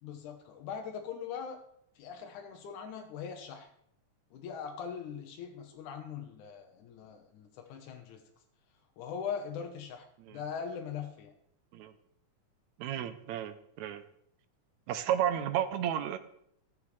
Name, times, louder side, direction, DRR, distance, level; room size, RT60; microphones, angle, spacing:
voice 1, 0.0-1.6 2.0-3.7 4.3-8.2 9.0-10.1 10.3-11.3, left 7 dB, 80° left, 3 dB, 2.4 m, -41 dB
voice 2, 12.8-14.0 14.9-16.2, right 10 dB, 75° right, 10 dB, 1.9 m, -32 dB
16.0 x 7.2 x 3.2 m, 0.71 s
omnidirectional pair, 3.5 m